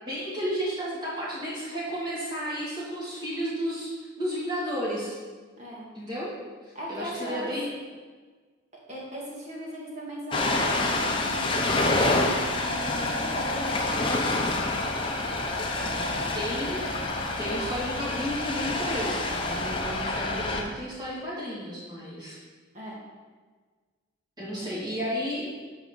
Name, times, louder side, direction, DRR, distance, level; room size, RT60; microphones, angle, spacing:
voice 1, 0.0-5.2 5.9-6.3 6.6-7.7 16.3-16.8 17.4-22.4 24.4-25.5, equal, 20° right, -7 dB, 2.6 m, -32 dB
voice 2, 6.7-7.5 8.9-14.0 22.7-23.0 24.6-24.7, right 1 dB, 35° right, -4 dB, 2.0 m, -38 dB
Ocean, 10.3-20.6, left 2 dB, 25° left, 0.8 m, -27 dB
8.9 x 5.0 x 5.4 m, 1.4 s
head